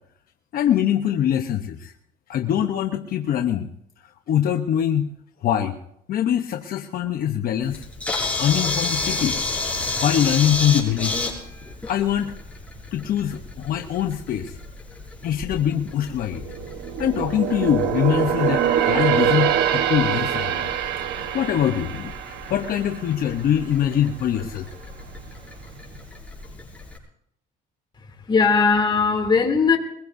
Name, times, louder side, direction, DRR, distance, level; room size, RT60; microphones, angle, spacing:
voice 1, 0.5-1.9 2.3-3.7 4.0-5.1 5.4-5.8 6.1-7.9 8.4-9.4 10.0-11.3 11.9-12.3 12.9-14.6 15.2-16.4 17.0-20.7 21.2-24.7, left 10 dB, 60° left, 1.0 m, -23 dB
Camera, 7.6-27.0, left 3 dB, 10° left, 6.6 m, -32 dB
sound 1, 16.2-23.8 24.1-24.4 24.9-25.6 26.0-26.1, right 9 dB, 80° right, 1.2 m, -24 dB
voice 2, 28.0-29.8, left 5 dB, 25° left, 2.8 m, -19 dB
22.5 x 20.5 x 2.7 m
cardioid pair, 110°, 17 cm